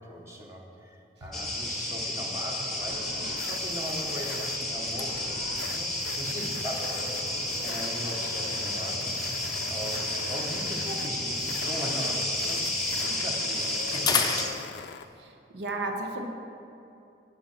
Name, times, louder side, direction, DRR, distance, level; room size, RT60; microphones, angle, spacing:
voice 1, 0.0-5.4 5.7-5.9 6.2-7.2 7.6-14.1, equal, 15° right, -1 dB, 0.9 m, -39 dB
sound 1, 1.3-14.5, left 1 dB, ahead, 1.1 m, -31 dB
sound 2, 2.6-2.8 3.2-3.4 3.7-7.7 8.5-12.1 12.4-15.2, left 5 dB, 20° left, 0.5 m, -37 dB
sound 3, 2.8-15.1, left 6 dB, 75° left, 0.4 m, -43 dB
voice 2, 15.2-16.2, right 2 dB, 80° right, 3 dB, 1.0 m, -33 dB
10.5 x 5.5 x 6.0 m, 2.7 s
head